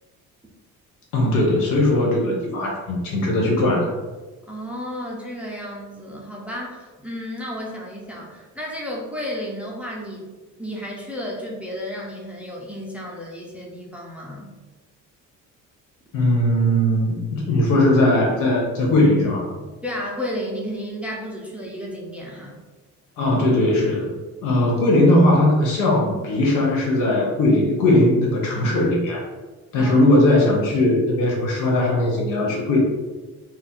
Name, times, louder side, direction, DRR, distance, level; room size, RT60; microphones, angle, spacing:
voice 1, 1.1-3.9 16.1-19.5 23.2-24.1 24.4-29.2 29.7-32.8, left 1 dB, 75° left, -2 dB, 1.5 m, -19 dB
voice 2, 4.5-10.3 10.6-14.5 19.8-22.6 29.7-30.1, equal, 5° right, -3 dB, 0.5 m, -32 dB
4.4 x 2.4 x 4.3 m, 1.3 s
cardioid pair, 165°, 32 cm